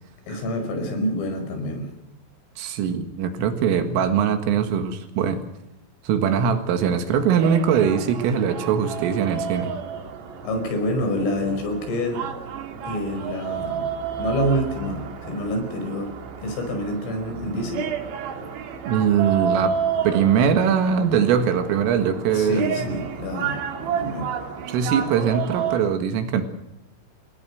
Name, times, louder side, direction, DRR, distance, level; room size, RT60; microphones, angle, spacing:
voice 1, 0.3-1.9 10.4-12.2 12.9-13.9 14.2-16.1 16.4-17.8 22.3-24.4, equal, 85° left, 5 dB, 7.6 m, -27 dB
voice 2, 2.6-5.4 6.0-9.7 18.9-19.8 20.0-22.9 24.7-26.4, right 7 dB, 85° right, 7 dB, 4.4 m, -21 dB
sound 1, 7.1-25.8, right 7 dB, 60° right, 4.1 m, -31 dB
29.0 x 20.0 x 6.4 m, 0.88 s
omnidirectional pair, 5.7 m